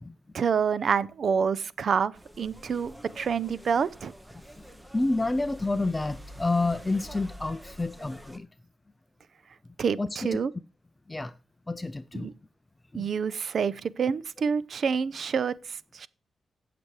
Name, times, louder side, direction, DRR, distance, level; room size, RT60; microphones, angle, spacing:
voice 1, 0.3-4.1 9.8-10.5 12.1-12.3 12.9-16.1, right 6 dB, 60° right, 0.5 m, -27 dB
sound 1, 2.1-8.4, equal, 10° right, 0.9 m, -47 dB
voice 2, 4.9-8.5 10.0-10.4 11.1-11.3 11.7-12.3 12.9-13.1, left 2 dB, 15° left, 0.4 m, -29 dB
17.0 x 6.8 x 3.2 m
wide cardioid pair, 115°, 0 cm